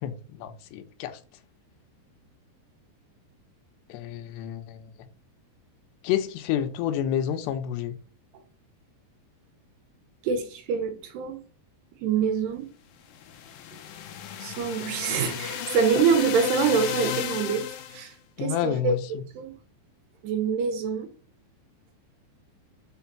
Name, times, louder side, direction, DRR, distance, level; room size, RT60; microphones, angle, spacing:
voice 1, 0.0-1.2 3.9-5.1 6.0-8.0 18.4-19.2, left 10 dB, 90° left, 3.0 m, -29 dB
voice 2, 10.2-11.4 12.0-12.7 14.4-17.6 17.9-19.0 19.3-19.5 20.2-21.1, right 6 dB, 85° right, 3.3 m, -25 dB
sound 1, 13.1-18.1, left 9 dB, 70° left, 2.3 m, -33 dB
6.4 x 5.1 x 5.8 m
omnidirectional pair, 4.8 m